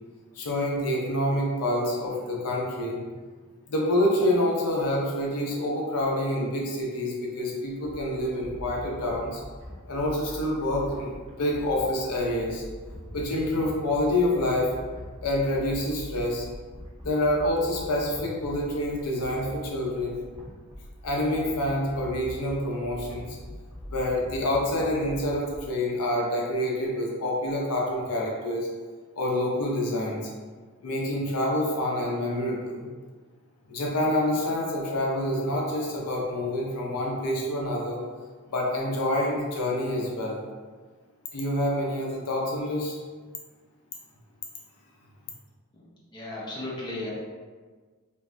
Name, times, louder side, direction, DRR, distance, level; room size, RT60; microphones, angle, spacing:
voice 1, 0.3-3.0 3.7-9.4 9.9-11.1 11.4-12.6 13.1-14.7 15.2-16.4 17.0-20.2 21.0-23.4 23.9-28.7 29.2-30.2 30.8-32.9 33.7-38.0 38.5-40.4 41.3-43.0, left 1 dB, 90° left, -2 dB, 0.7 m, -27 dB
sound 1, 7.8-25.6, equal, 20° right, 0.6 m, -43 dB
voice 2, 45.7-47.1, left 2 dB, 20° left, -6 dB, 0.7 m, -36 dB
2.6 x 2.5 x 3.3 m, 1.5 s
head